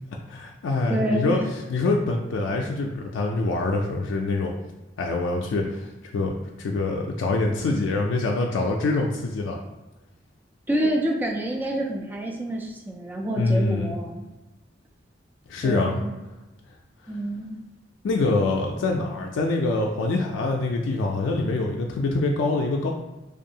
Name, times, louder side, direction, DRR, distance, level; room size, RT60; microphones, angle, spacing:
voice 1, 0.3-1.4 1.7-4.5 5.0-5.9 6.1-6.3 6.6-9.6 13.4-14.0 15.5-16.0 18.0-22.9, left 2 dB, 80° left, 0 dB, 0.3 m, -25 dB
voice 2, 0.9-1.5 10.7-14.2 15.6-16.2 17.1-17.6, right 1 dB, 10° right, 0 dB, 0.3 m, -27 dB
2.6 x 2.3 x 2.7 m, 1.1 s
head